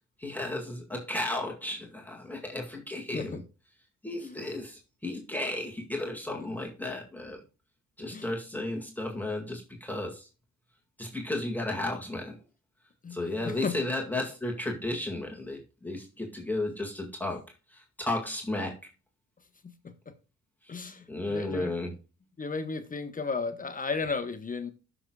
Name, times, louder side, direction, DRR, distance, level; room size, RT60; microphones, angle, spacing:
voice 1, 0.2-3.4 4.0-7.4 8.0-10.3 11.0-12.3 13.1-17.4 17.7-18.8 21.1-21.9, left 2 dB, 5° left, 2.0 m, -34 dB
voice 2, 13.0-13.9 19.6-20.1 20.7-21.7 22.4-24.7, left 4 dB, 25° left, 1.1 m, -35 dB
13.0 x 6.2 x 2.3 m
cardioid pair, 90°, 30 cm